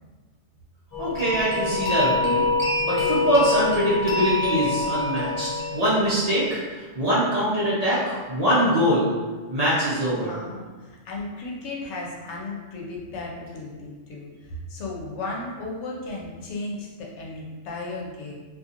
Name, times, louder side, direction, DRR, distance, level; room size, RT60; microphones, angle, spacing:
sound 1, 0.9-6.6, left 2 dB, 30° left, 0.4 m, -26 dB
voice 1, 1.0-2.5 2.8-9.1 9.5-10.3, equal, 40° right, -10 dB, 0.6 m, -23 dB
voice 2, 10.2-18.3, left 2 dB, 75° left, -2 dB, 0.9 m, -35 dB
2.7 x 2.4 x 2.5 m, 1.3 s
omnidirectional pair, 1.2 m